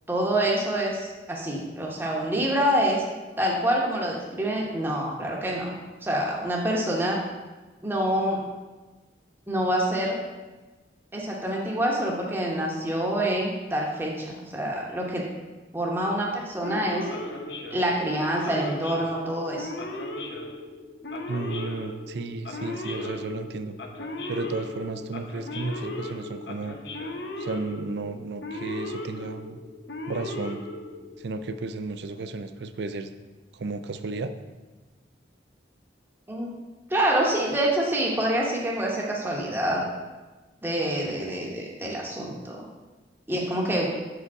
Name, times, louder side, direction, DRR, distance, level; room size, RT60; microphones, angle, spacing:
voice 1, 0.1-3.0 3.4-5.7 6.0-7.2 7.8-8.4 9.5-10.2 11.1-15.2 15.7-17.1 17.7-19.7 36.3-36.5 36.9-39.8 40.6-42.6 43.3-43.9, right 1 dB, 10° right, -3 dB, 0.9 m, -26 dB
Male speech man speaking / Siren, 16.6-31.3, left 1 dB, 65° left, 0.7 m, -37 dB
voice 2, 21.3-23.8 24.3-26.8 27.4-29.6 30.1-30.6 31.2-33.1 33.5-34.3, right 3 dB, 65° right, 10 dB, 0.4 m, -33 dB
6.5 x 4.9 x 4.7 m, 1.2 s
head